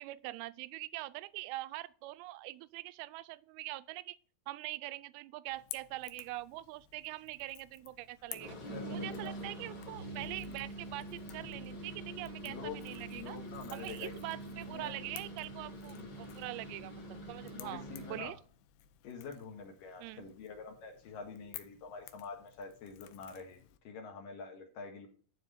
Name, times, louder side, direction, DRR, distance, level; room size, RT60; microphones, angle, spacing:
voice 1, 0.0-4.2 4.5-8.6 8.9-13.4 13.7-17.8 18.1-18.4 20.0-20.3, right 18 dB, 85° right, 2.5 m, -43 dB
Crackle / Crack, 5.5-23.8, left 14 dB, 85° left, 2.8 m, -54 dB
sound 1, 8.3-18.3, right 1 dB, 35° left, 2.4 m, -45 dB
voice 2, 8.7-9.5 12.4-12.8 13.1-14.1 14.7-15.0 15.9-16.3 17.5-18.3 19.0-25.1, left 5 dB, 65° left, 3.2 m, -46 dB
12.0 x 4.0 x 6.6 m
omnidirectional pair, 4.5 m